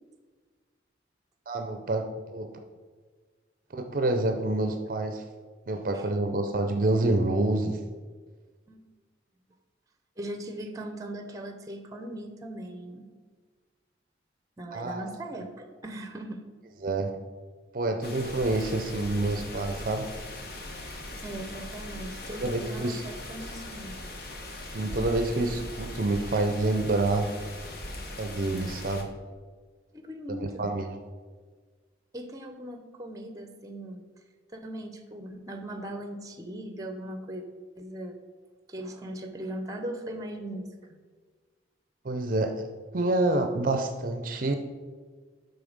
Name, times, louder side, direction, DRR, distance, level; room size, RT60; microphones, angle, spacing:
voice 1, 1.5-2.5 3.7-5.2 5.7-7.8 14.7-15.0 16.8-17.2 17.7-20.1 22.4-23.0 24.7-27.3 28.2-29.1 30.3-31.0 42.0-42.6 42.9-44.5, right 2 dB, 50° right, 6 dB, 0.5 m, -27 dB
voice 2, 10.2-13.1 14.6-16.4 21.2-24.0 29.9-30.7 32.1-34.0 34.5-37.4 37.8-38.2 38.7-41.0, right 1 dB, 20° right, 7 dB, 0.8 m, -39 dB
sound 1, 18.0-29.0, left 1 dB, 55° left, 1.1 m, -40 dB
11.5 x 4.1 x 5.1 m, 1.5 s
head